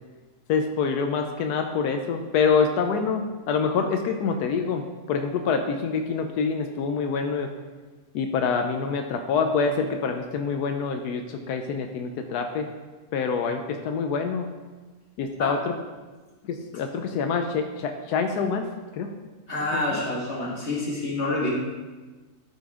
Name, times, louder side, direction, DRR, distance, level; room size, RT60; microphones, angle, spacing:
voice 1, 0.5-4.8 5.1-7.5 8.1-12.7 13.1-14.5 15.2-15.7 16.4-18.7 18.9-19.1 19.7-20.0, left 5 dB, 90° left, 5 dB, 1.2 m, -26 dB
voice 2, 19.5-21.5, left 2 dB, 45° left, -5 dB, 2.4 m, -27 dB
12.0 x 5.9 x 3.6 m, 1.3 s
omnidirectional pair, 1.6 m